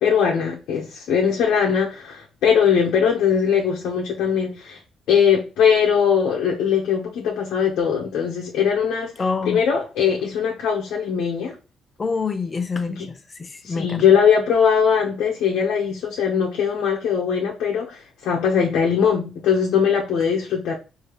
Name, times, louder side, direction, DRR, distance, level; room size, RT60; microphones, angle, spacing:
voice 1, 0.0-4.8 5.1-9.1 9.5-11.5 13.6-20.8, left 7 dB, 85° left, 0.9 m, -20 dB
voice 2, 9.2-9.6 12.0-14.0, left 4 dB, 30° left, 0.7 m, -26 dB
4.8 x 2.8 x 3.0 m
cardioid pair, 90°, 0 cm